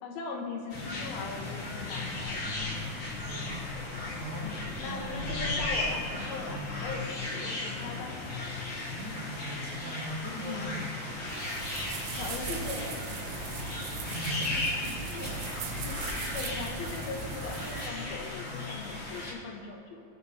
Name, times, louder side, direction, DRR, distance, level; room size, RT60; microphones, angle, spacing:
voice 1, 0.0-2.7 4.4-8.1 10.5-10.8 12.1-13.0 15.7-20.0, left 4 dB, 85° left, -1 dB, 3.0 m, -40 dB
sound 1, 0.7-19.3, left 2 dB, 60° left, 1.1 m, -36 dB
voice 2, 3.2-3.6 4.2-4.5 4.8-5.8 6.5-6.7 8.9-11.2 14.0-15.5, right 1 dB, 70° right, -5 dB, 1.0 m, -40 dB
sound 2, 11.3-17.9, right 6 dB, 85° right, 2.7 m, -39 dB
18.0 x 7.0 x 2.8 m, 2.4 s
omnidirectional pair, 4.2 m